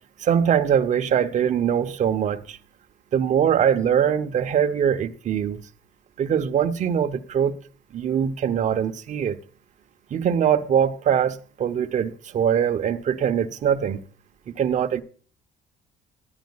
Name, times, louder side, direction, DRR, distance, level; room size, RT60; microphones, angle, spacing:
voice 1, 0.2-2.6 3.1-5.6 6.2-7.6 7.9-9.4 10.1-14.0 14.6-15.0, right 8 dB, 45° right, 0.7 m, -22 dB
19.0 x 10.5 x 2.3 m
cardioid pair, 110°, 17 cm